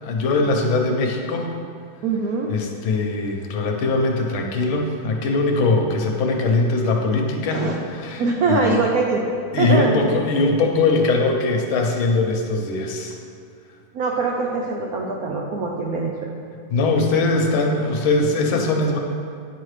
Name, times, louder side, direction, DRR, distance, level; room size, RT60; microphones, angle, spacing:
voice 1, 0.0-1.5 2.5-7.7 8.0-8.7 9.5-13.1 16.7-19.0, left 3 dB, 85° left, 2 dB, 1.6 m, -21 dB
voice 2, 2.0-2.5 7.5-7.7 8.2-9.2 9.6-10.1 13.9-16.1, right 3 dB, 90° right, 0 dB, 0.8 m, -22 dB
9.1 x 5.6 x 3.2 m, 2.3 s
omnidirectional pair, 2.2 m